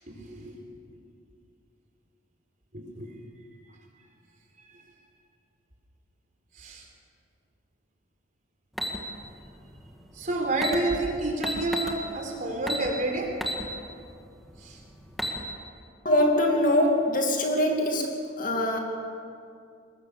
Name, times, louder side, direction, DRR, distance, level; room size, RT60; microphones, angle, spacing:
voice 1, 0.1-0.6 2.7-3.1 6.6-6.8 10.1-13.4 14.6-14.8, right 2 dB, 40° right, 1 dB, 4.2 m, -29 dB
sound 1, 8.8-9.0 10.2-10.3 10.5-10.8 11.4-12.0 12.7-12.9 13.4-13.6 14.1-14.2 15.0-15.4, equal, ahead, 1.9 m, -30 dB
voice 2, 16.0-18.8, left 1 dB, 40° left, 2 dB, 2.5 m, -23 dB
23.0 x 20.5 x 7.0 m, 2.4 s
head